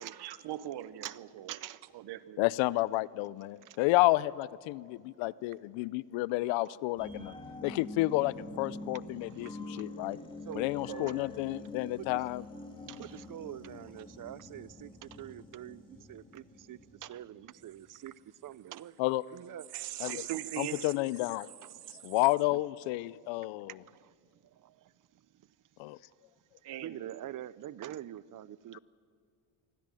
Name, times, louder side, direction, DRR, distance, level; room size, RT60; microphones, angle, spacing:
voice 1, 0.0-1.6 1.9-2.4 2.7-2.8 3.1-3.2 19.7-20.9 26.6-27.2, right 13 dB, 60° right, 14 dB, 1.2 m, -40 dB
voice 2, 1.5-1.8 3.6-3.8 9.2-9.8 10.5-11.2 12.0-12.2 12.9-18.1 18.4-18.9 19.3-19.7 20.1-20.2 21.6-21.8 22.5-22.6 23.8-24.1 24.6-24.8 26.8-28.8, right 12 dB, 45° right, 19 dB, 0.7 m, -45 dB
voice 3, 2.4-7.3 7.6-10.2 10.5-12.4 19.0-19.2 20.0-20.2 20.6-21.5 22.0-23.7 25.8-26.0 28.7-28.8, left 19 dB, 80° left, 20 dB, 0.7 m, -30 dB
sound 1, 7.0-18.0 18.4-18.5, left 2 dB, 10° left, 2.8 m, -46 dB
24.0 x 16.5 x 7.7 m, 2.3 s
supercardioid pair, 90°, 45 cm